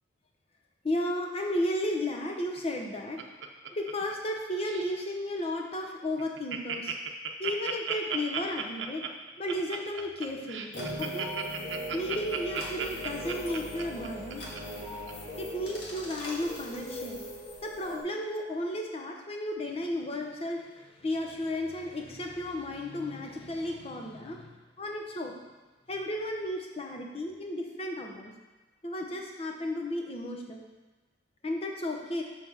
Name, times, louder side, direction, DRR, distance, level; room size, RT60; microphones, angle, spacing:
voice 1, 0.8-3.2 3.7-7.0 7.4-9.0 9.4-11.3 11.9-14.4 15.4-17.2 17.6-25.4 25.9-28.3 28.8-30.7 31.4-32.2, left 1 dB, 30° left, 1 dB, 0.8 m, -34 dB
Laughter, 2.6-4.3 4.6-5.0 5.4-5.5 5.8-5.9 6.2-14.6 15.1-15.2, right 7 dB, 80° right, 0.6 m, -35 dB
sound 1, 10.7-18.0, equal, 65° left, 1.6 m, -39 dB
6.9 x 4.5 x 5.5 m, 1.2 s
head